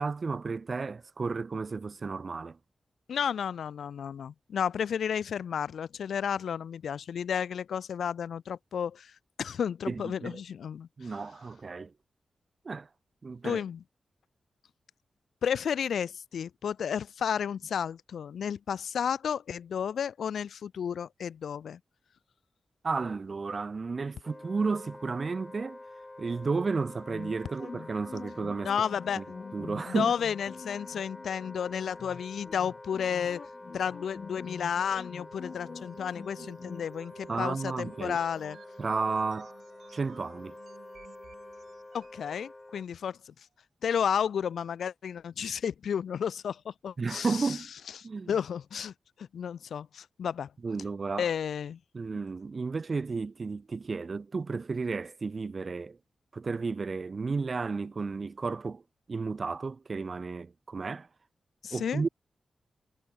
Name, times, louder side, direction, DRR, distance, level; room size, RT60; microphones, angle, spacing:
voice 1, 0.0-2.6 9.9-10.4 11.0-11.9 12.6-12.9 13.2-13.6 22.8-25.8 26.2-28.7 29.1-29.2 29.5-30.1 37.3-38.2 38.8-39.6 39.9-40.5 47.0-47.7 48.0-48.3 50.6-51.3 51.9-56.0 56.3-58.8 59.1-61.1 61.7-62.1, right 4 dB, 50° right, 1.2 m, -32 dB
voice 2, 3.1-9.1 9.4-10.9 13.4-13.8 15.4-21.8 28.6-29.2 29.9-33.4 33.7-38.6 41.9-43.3 43.8-47.6 48.3-48.9 49.3-50.5 51.2-51.8 61.6-62.0, left 8 dB, 90° left, 0.4 m, -32 dB
Wind instrument woodwind instrument, 24.2-42.9, left 2 dB, 25° left, 1.3 m, -48 dB
sound 1, 27.1-36.9, left 5 dB, 60° left, 1.2 m, -46 dB
sound 2, 35.2-42.3, right 7 dB, 85° right, 3.2 m, -55 dB
cardioid pair, 60°, 0 cm